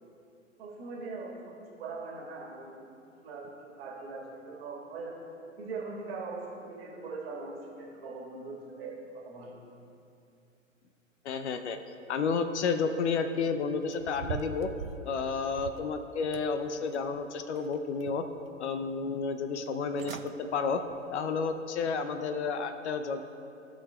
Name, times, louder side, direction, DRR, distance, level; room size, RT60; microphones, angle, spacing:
voice 1, 0.6-1.5 1.8-2.8 3.2-5.2 5.6-9.6, right 3 dB, 45° right, -2 dB, 1.7 m, -41 dB
voice 2, 11.2-11.8 12.1-14.7 15.1-18.3 18.6-20.8 21.1-23.3, left 5 dB, 60° left, 8 dB, 0.6 m, -31 dB
sound 1, 13.9-15.9 16.3-17.2 17.6-18.4 18.8-18.9 19.7-19.8 20.0-20.3 20.8-21.0 21.5-21.6, right 6 dB, 80° right, 0.5 m, -42 dB
15.5 x 6.1 x 2.2 m, 2.7 s
figure-of-eight pair, 105°, 40 cm